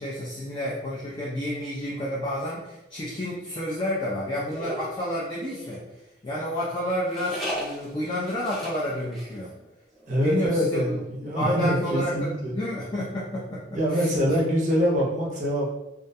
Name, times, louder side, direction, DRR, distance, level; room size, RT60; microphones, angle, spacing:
voice 1, 0.0-5.8 6.2-9.5 10.2-13.6 13.9-14.5, equal, 25° left, -6 dB, 0.3 m, -30 dB
sound 1, 4.5-5.9 7.1-8.8 9.1-9.3 9.6-9.7 9.9-10.3, equal, ahead, 0.7 m, -35 dB
voice 2, 10.1-12.6 13.7-15.7, equal, 40° right, -4 dB, 0.6 m, -24 dB
2.3 x 2.1 x 2.6 m, 0.94 s
head